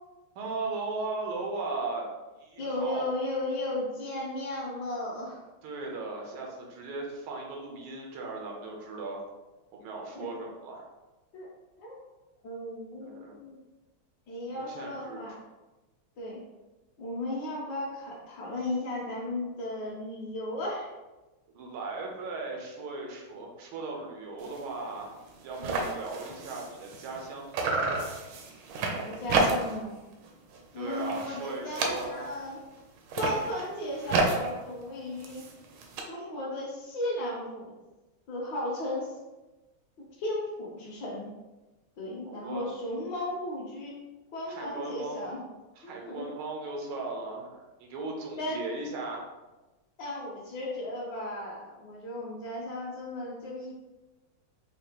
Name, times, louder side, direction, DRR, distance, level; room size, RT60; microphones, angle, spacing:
voice 1, 0.3-2.1 2.4-3.0 5.6-9.2 9.7-10.9 13.0-13.3 14.5-15.2 21.5-25.1 25.4-27.6 30.7-32.2 42.2-42.7 44.5-45.3 45.8-47.5 47.8-49.2, right 3 dB, 90° right, 0 dB, 1.6 m, -37 dB
voice 2, 2.6-5.4 10.1-10.3 11.3-11.5 11.8-12.0 12.4-13.6 14.3-15.4 16.2-16.4 17.0-20.9 25.6-25.9 28.9-29.9 30.7-32.6 33.2-35.4 36.0-37.7 38.3-39.1 40.2-41.3 42.0-43.9 44.3-45.4 45.8-46.4 48.4-48.6 50.0-53.7, left 1 dB, 65° left, -6 dB, 1.4 m, -35 dB
sound 1, 24.4-24.6 25.0-25.1 25.3-27.3 27.5-29.9 30.2-30.6 30.9-32.4 33.0-36.0, right 3 dB, 75° right, 1.2 m, -31 dB
5.0 x 2.4 x 2.8 m, 1.1 s
omnidirectional pair, 2.3 m